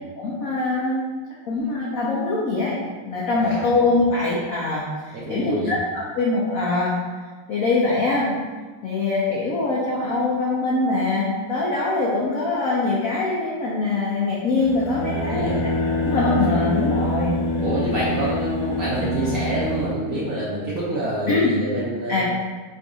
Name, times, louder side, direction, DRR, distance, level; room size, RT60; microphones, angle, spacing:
voice 1, 0.2-1.0 1.4-2.8 3.1-6.9 7.5-8.3 8.8-15.5 16.0-17.4 21.3-21.5 22.1-22.2, left 3 dB, 75° left, -6 dB, 0.8 m, -23 dB
voice 2, 3.4-3.7 5.1-5.7 15.1-15.7 17.6-22.2, right 1 dB, 60° right, -7 dB, 0.9 m, -27 dB
sound 1, 14.6-19.9, left 1 dB, 55° left, 1.3 m, -25 dB
3.9 x 2.6 x 4.7 m, 1.3 s
omnidirectional pair, 2.4 m